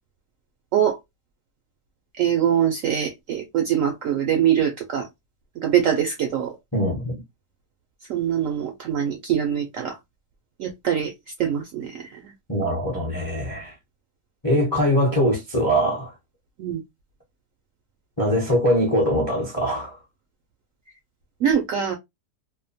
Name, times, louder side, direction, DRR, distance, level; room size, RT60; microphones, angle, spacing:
voice 1, 2.2-5.1 5.6-6.5 8.1-10.0 10.6-11.1 11.4-12.3 16.6-16.8 21.4-22.0, right 9 dB, 70° right, 0.7 m, -23 dB
voice 2, 6.7-7.2 12.5-13.7 14.4-16.1 18.2-20.0, equal, 25° left, 0.5 m, -22 dB
2.7 x 2.1 x 2.6 m
omnidirectional pair, 1.8 m